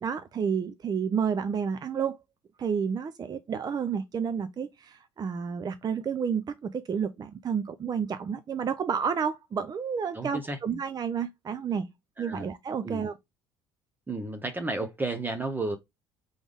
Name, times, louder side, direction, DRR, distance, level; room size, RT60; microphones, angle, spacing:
voice 1, 0.0-2.2 2.6-11.9 12.2-13.1, right 7 dB, 35° right, 0.5 m, -30 dB
voice 2, 10.1-10.6 12.2-12.5 12.8-13.1 14.1-15.8, right 2 dB, 15° right, 0.9 m, -32 dB
3.8 x 3.5 x 3.4 m
supercardioid pair, 80°, 12 cm